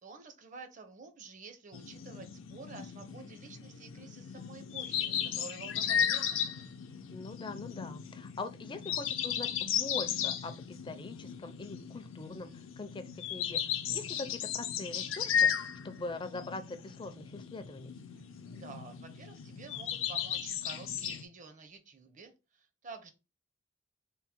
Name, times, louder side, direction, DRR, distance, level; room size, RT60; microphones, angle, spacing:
voice 1, 0.0-6.7 18.1-23.1, right 4 dB, 40° right, 0.6 m, -50 dB
sound 1, 1.7-21.2, left 9 dB, 75° left, 0.5 m, -35 dB
voice 2, 7.1-13.6 13.9-17.9, left 3 dB, 25° left, 0.4 m, -43 dB
3.6 x 2.0 x 4.3 m
head